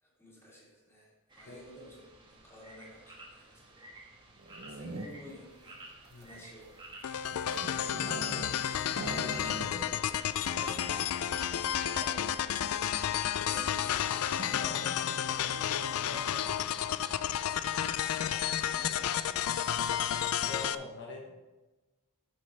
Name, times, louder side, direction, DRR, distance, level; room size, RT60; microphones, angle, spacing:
voice 1, 0.0-3.9 4.7-6.8 7.4-10.8 11.1-12.5 13.0-16.3 18.5-20.2, equal, 10° left, -6 dB, 2.6 m, -53 dB
sound 1, 1.3-19.1, right 2 dB, 20° right, 1.4 m, -54 dB
sound 2, 4.4-5.4 6.1-8.6 8.9-10.0 10.3-10.4 10.6-11.0, right 2 dB, 45° right, 0.6 m, -42 dB
sound 3, 7.0-20.7, left 10 dB, 85° left, 0.4 m, -31 dB
voice 2, 14.3-15.1 16.1-16.4 16.7-16.8 17.1-17.2 20.4-21.4, left 2 dB, 55° left, 0 dB, 1.0 m, -44 dB
9.6 x 7.4 x 3.3 m, 1.1 s
head